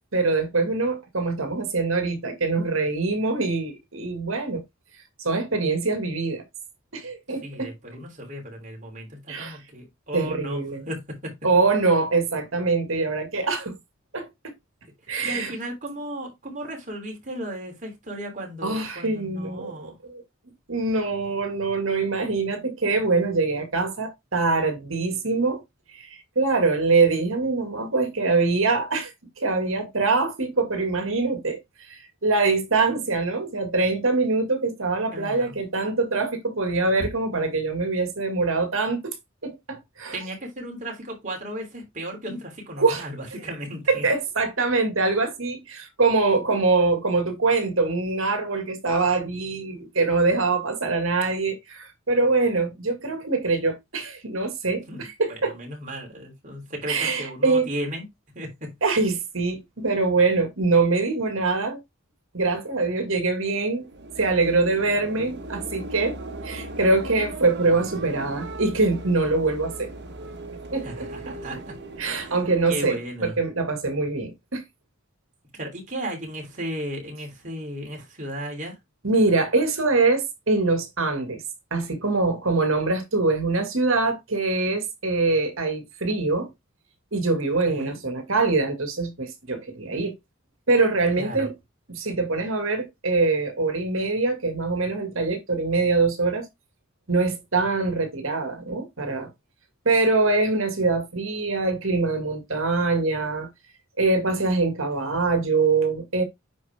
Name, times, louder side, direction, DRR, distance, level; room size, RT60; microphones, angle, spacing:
voice 1, 0.1-4.6 5.2-6.4 6.9-7.7 9.3-9.6 10.1-10.9 11.4-13.8 14.1-14.5 15.1-15.5 18.6-20.2 20.7-25.6 25.9-29.1 29.4-31.6 31.9-39.1 39.4-40.2 42.8-43.1 43.9-55.5 56.9-57.7 58.8-61.8 62.3-63.9 64.2-66.2 66.4-69.9 70.7-71.1 72.0-74.6 79.0-81.4 81.7-86.5 87.1-90.1 90.7-91.5 91.9-96.5 97.1-99.3 99.9-103.5 104.0-106.2, right 3 dB, 70° right, 2.1 m, -24 dB
voice 2, 7.4-11.4 15.2-20.0 35.1-35.6 40.1-44.1 54.9-55.0 55.3-58.1 58.4-58.8 70.8-71.8 72.2-72.3 72.7-73.4 75.5-78.7 87.7-88.0 91.2-91.5 105.0-105.3, right 1 dB, 35° right, 3.5 m, -35 dB
sound 1, 63.7-73.1, right 1 dB, 50° right, 1.4 m, -38 dB
9.4 x 4.4 x 3.5 m
head